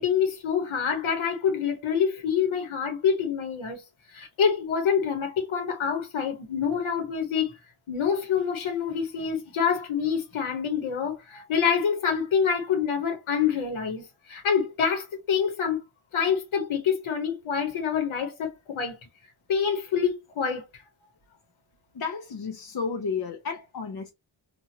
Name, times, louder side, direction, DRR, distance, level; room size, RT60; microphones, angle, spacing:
voice 1, 0.0-3.8 4.1-7.5 7.9-15.8 16.1-19.0 19.5-20.8, left 7 dB, 75° left, 1.1 m, -26 dB
voice 2, 21.9-24.1, left 5 dB, 50° left, 0.7 m, -32 dB
2.9 x 2.5 x 2.7 m
wide cardioid pair, 145°, 48 cm